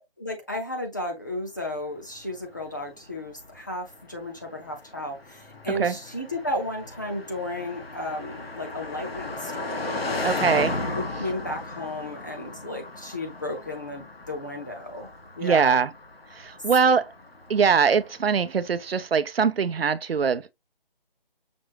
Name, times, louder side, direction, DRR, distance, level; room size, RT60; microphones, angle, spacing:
voice 1, 0.2-10.0 10.9-15.1 15.4-15.8 16.8-16.9, left 1 dB, 20° left, 0.6 m, -33 dB
Car passing by, 2.1-18.5, left 2 dB, 85° left, 1.3 m, -36 dB
voice 2, 10.2-10.7 15.4-15.9 16.3-17.1 17.5-20.5, right 6 dB, 80° right, 0.6 m, -22 dB
6.0 x 2.6 x 2.8 m
figure-of-eight pair, 165°, 29 cm